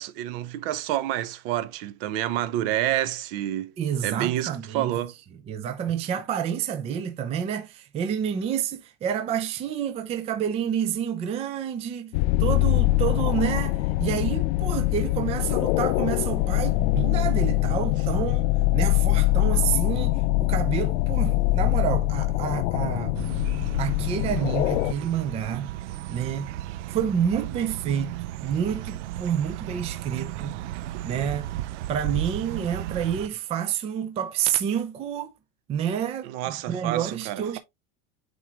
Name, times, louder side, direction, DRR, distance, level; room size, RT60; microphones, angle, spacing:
voice 1, 0.0-3.7 4.0-5.1 36.2-37.6, right 13 dB, 55° right, 0.8 m, -28 dB
voice 2, 3.8-5.0 5.5-23.2 23.8-25.7 26.1-26.5 26.9-28.1 28.4-30.6 31.0-31.5 31.9-35.3 35.7-37.6, right 8 dB, 20° right, 0.5 m, -29 dB
sound 1, 12.1-24.9, left 18 dB, 85° left, 0.5 m, -23 dB
sound 2, 23.1-33.3, right 14 dB, 85° right, 0.5 m, -34 dB
9.2 x 3.7 x 2.9 m
supercardioid pair, 165°, 34 cm